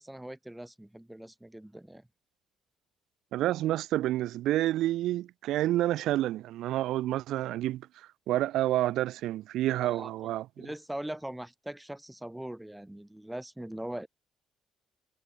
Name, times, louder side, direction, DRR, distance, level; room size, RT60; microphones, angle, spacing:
voice 1, 0.0-2.0 9.8-10.3 10.6-14.1, right 1 dB, 5° right, 1.9 m, -41 dB
voice 2, 3.3-7.9 8.3-10.7, right 14 dB, 85° right, 0.9 m, -29 dB
cardioid pair, 90°, 0 cm